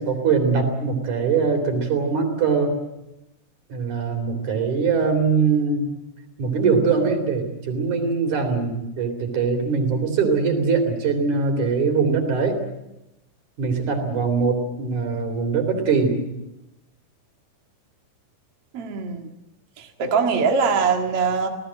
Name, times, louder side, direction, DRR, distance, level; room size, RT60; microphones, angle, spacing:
voice 1, 0.0-2.8 3.7-5.9 6.4-12.6 13.6-16.2, right 5 dB, 40° right, 6 dB, 4.4 m, -22 dB
voice 2, 18.7-19.3 19.8-21.5, right 5 dB, 60° right, 2 dB, 1.5 m, -22 dB
27.5 x 18.0 x 7.7 m, 0.92 s
omnidirectional pair, 5.9 m